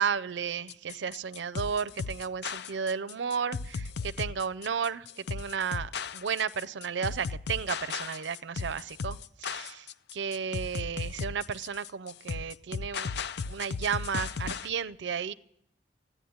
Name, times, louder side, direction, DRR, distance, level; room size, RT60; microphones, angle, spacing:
voice 1, 0.0-9.9 10.1-13.1 13.5-15.3, right 6 dB, 75° right, 15 dB, 0.5 m, -33 dB
sound 1, 0.7-14.7, left 5 dB, 65° left, 0.5 m, -36 dB
15.5 x 10.0 x 9.4 m, 0.79 s
head